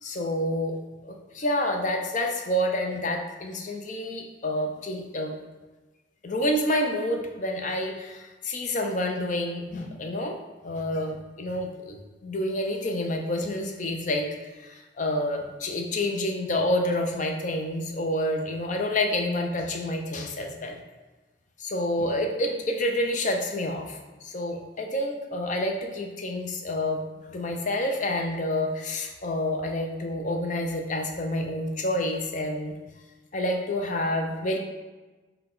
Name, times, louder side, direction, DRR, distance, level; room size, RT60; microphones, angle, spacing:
voice 1, 0.0-0.8 1.0-5.4 6.2-10.4 10.6-20.8 21.6-32.8 33.3-34.6, left 1 dB, 40° left, 3 dB, 0.5 m, -28 dB
5.5 x 2.2 x 3.8 m, 1.2 s
head